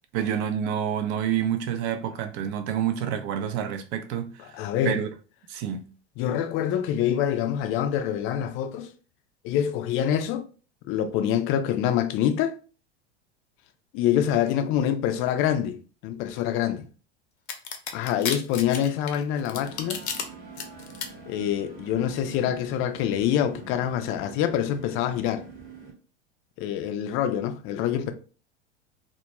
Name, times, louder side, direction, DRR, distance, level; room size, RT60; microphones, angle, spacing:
voice 1, 0.1-4.6 4.8-5.1 5.5-5.9, right 9 dB, 50° right, 0.5 m, -28 dB
voice 2, 4.4-5.0 6.2-8.9 9.4-10.4 10.8-12.5 13.9-16.8 17.9-20.0 21.3-25.4 26.6-28.1, left 10 dB, 40° left, 0.4 m, -26 dB
sound 1, 17.5-20.2 20.6-21.1, left 7 dB, 75° left, 0.6 m, -31 dB
sound 2, 19.5-25.9, right 4 dB, 25° right, 0.9 m, -45 dB
2.2 x 2.1 x 2.9 m
hypercardioid pair, 90°, 34 cm